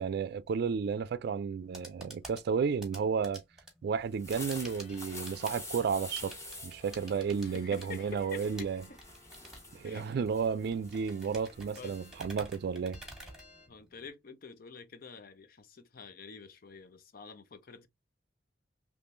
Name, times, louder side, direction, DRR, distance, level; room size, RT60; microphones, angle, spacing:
voice 1, 0.0-3.4 3.8-6.4 6.6-8.8 9.7-13.0, right 6 dB, 60° right, 0.3 m, -32 dB
sound 1, 1.5-14.1, right 1 dB, 5° right, 1.3 m, -51 dB
sound 2, 4.0-13.3, left 1 dB, 15° left, 1.4 m, -48 dB
sound 3, 4.5-13.7, left 3 dB, 40° left, 1.5 m, -59 dB
voice 2, 7.4-9.0 9.8-10.3 11.8-12.0 13.7-17.9, left 5 dB, 55° left, 0.6 m, -48 dB
3.6 x 3.1 x 2.5 m
head